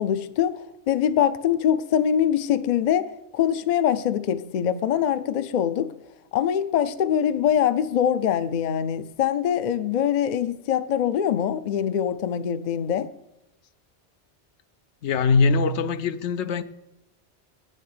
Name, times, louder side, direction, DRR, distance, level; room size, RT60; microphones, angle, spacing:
voice 1, 0.0-3.1 3.3-5.9 6.3-13.1, left 9 dB, 50° left, 0.6 m, -23 dB
voice 2, 15.0-16.6, left 4 dB, 80° left, 0.9 m, -22 dB
8.6 x 6.6 x 6.6 m
omnidirectional pair, 1.2 m